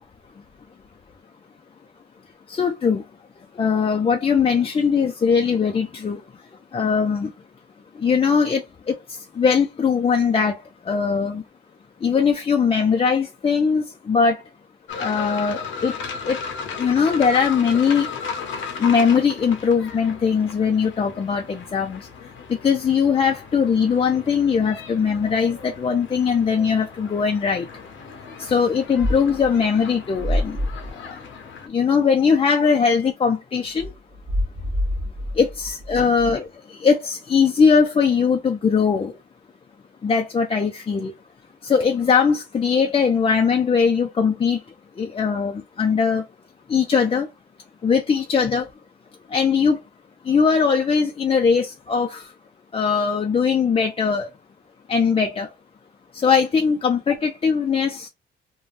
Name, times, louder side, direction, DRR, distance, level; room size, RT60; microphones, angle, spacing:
voice 1, 2.5-3.0 3.6-6.2 6.7-7.3 8.0-10.6 10.9-11.4 12.0-14.4 15.0-15.9 16.2-16.4 16.8-18.1 18.8-22.1 22.6-27.7 28.4-30.6 31.7-33.9 35.4-39.1 40.0-41.1 41.6-44.6 45.0-46.2 46.7-47.3 47.8-48.7 49.3-49.8 50.3-52.3 52.7-54.3 54.9-55.5 56.1-58.1, left 6 dB, 30° left, 0.5 m, -20 dB
sound 1, 14.9-31.7, left 5 dB, 75° left, 0.7 m, -36 dB
sound 2, 29.0-29.5 30.1-30.9 33.8-36.3, left 1 dB, 30° right, 1.0 m, -26 dB
2.5 x 2.2 x 3.2 m
cardioid pair, 90°, 20 cm